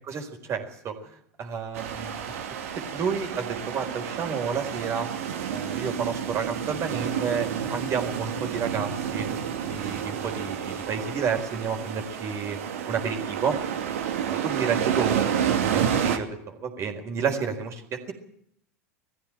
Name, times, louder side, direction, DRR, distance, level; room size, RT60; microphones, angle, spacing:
voice 1, 0.0-2.4 2.9-5.1 5.5-9.3 9.6-12.6 12.9-13.6 14.2-15.2 15.7-18.1, right 6 dB, 35° right, 4 dB, 4.5 m, -31 dB
sound 1, 1.7-16.2, right 8 dB, 70° right, 2.6 m, -30 dB
19.5 x 15.0 x 8.9 m, 0.71 s
figure-of-eight pair, 85°, 8 cm